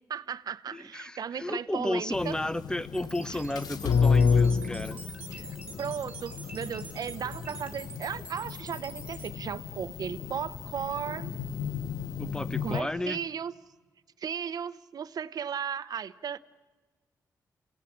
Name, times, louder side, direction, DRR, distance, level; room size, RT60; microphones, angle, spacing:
voice 1, 0.1-2.4 5.3-5.5 5.8-11.3 12.6-13.5 14.2-16.4, right 7 dB, 70° right, 15 dB, 0.8 m, -35 dB
voice 2, 0.7-5.0 12.2-13.2, left 1 dB, 10° left, 14 dB, 1.0 m, -33 dB
sound 1, 2.1-12.8, left 6 dB, 75° left, 1.0 m, -31 dB
sound 2, 2.9-9.3, right 2 dB, 15° right, 3.3 m, -46 dB
29.0 x 17.0 x 8.7 m, 1.3 s
cardioid pair, 70°, 7 cm